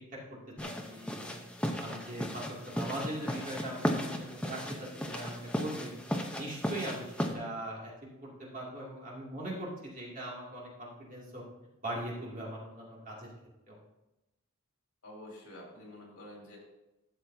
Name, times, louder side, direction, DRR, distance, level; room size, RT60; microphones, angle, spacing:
sound 1, 0.6-7.3, equal, 5° left, 0.7 m, -36 dB
voice 1, 0.6-1.4 1.8-5.9 6.4-7.9 8.2-11.4 11.8-13.3 13.7-13.8, right 1 dB, 35° right, -4 dB, 2.4 m, -40 dB
voice 2, 15.0-16.6, left 1 dB, 75° left, -2 dB, 3.4 m, -48 dB
12.5 x 7.4 x 2.7 m, 0.95 s
head